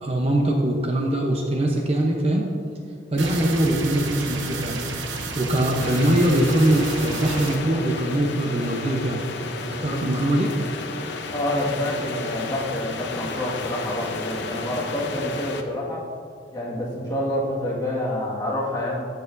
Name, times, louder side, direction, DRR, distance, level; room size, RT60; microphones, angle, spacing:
voice 1, 0.0-2.5 3.1-4.9 5.4-9.2 9.7-10.5, right 1 dB, 30° right, 0 dB, 0.8 m, -22 dB
sound 1, 3.2-7.6, right 3 dB, 75° right, 1.0 m, -31 dB
sound 2, 5.8-15.6, left 3 dB, 60° left, 0.8 m, -33 dB
voice 2, 11.3-16.0 16.5-19.0, left 1 dB, 20° left, -5 dB, 1.8 m, -27 dB
13.5 x 8.0 x 2.7 m, 2.3 s
head